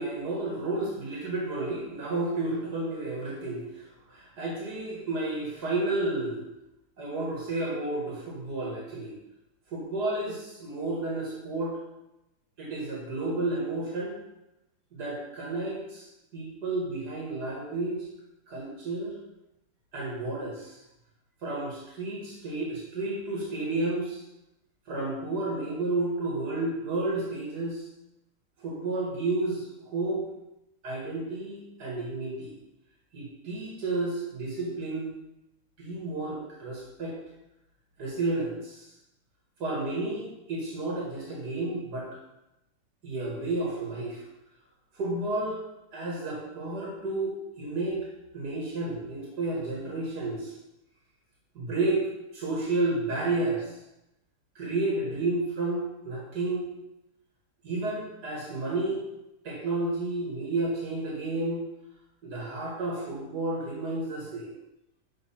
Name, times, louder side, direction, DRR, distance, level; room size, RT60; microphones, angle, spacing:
voice 1, 0.0-6.4 7.0-9.2 9.7-11.8 12.6-14.2 14.9-16.1 16.3-18.0 18.5-19.2 19.9-20.8 21.4-24.2 24.9-27.8 28.6-30.2 30.8-32.6 33.1-35.1 35.8-37.1 38.0-38.8 39.6-42.1 43.0-44.2 44.9-45.6 45.9-48.1 48.3-50.5 51.5-52.0 52.3-53.6 54.6-56.6 57.6-59.0 59.4-61.6 62.2-64.5, right 2 dB, 85° right, -4 dB, 2.4 m, -31 dB
6.5 x 4.8 x 5.7 m, 0.91 s
omnidirectional pair, 1.7 m